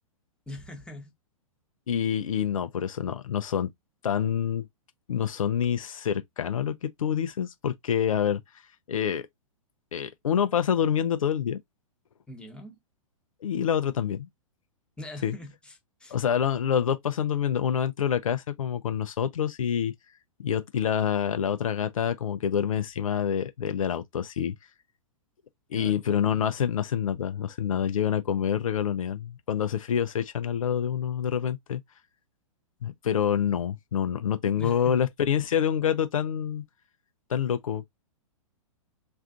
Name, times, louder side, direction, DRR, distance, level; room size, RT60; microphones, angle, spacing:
voice 1, 0.5-1.1 12.3-12.8 15.0-16.2 25.7-26.4 34.5-35.0, left 1 dB, 5° left, 1.0 m, -43 dB
voice 2, 1.9-3.7 4.0-4.7 5.1-8.4 8.9-9.3 9.9-11.6 13.4-14.3 15.2-15.3 16.1-19.9 20.4-24.5 25.7-31.8 32.8-36.6 37.3-37.9, left 8 dB, 75° left, 0.5 m, -27 dB
3.3 x 2.5 x 2.4 m
figure-of-eight pair, 110°, 18 cm